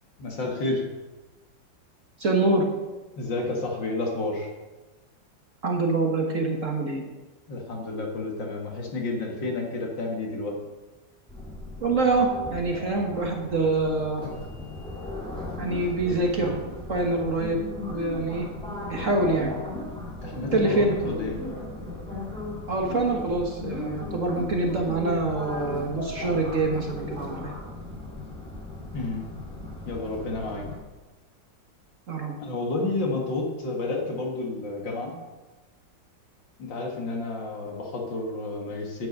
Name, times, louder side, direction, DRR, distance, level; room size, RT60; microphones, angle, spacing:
voice 1, 0.2-0.8 3.2-4.5 7.5-10.6 20.2-21.4 28.9-29.3 29.9-30.6 32.4-35.2 36.6-39.1, left 2 dB, 75° left, 0 dB, 2.6 m, -30 dB
voice 2, 2.2-2.6 5.6-7.0 11.8-14.2 15.6-16.6 16.9-17.6 17.9-18.5 18.9-19.5 20.5-21.0 22.7-27.5 32.1-32.3, right 2 dB, 45° right, 1 dB, 1.5 m, -25 dB
sound 1, 11.3-30.8, left 2 dB, 5° left, 3.2 m, -37 dB
10.5 x 9.5 x 5.4 m, 1.2 s
omnidirectional pair, 2.0 m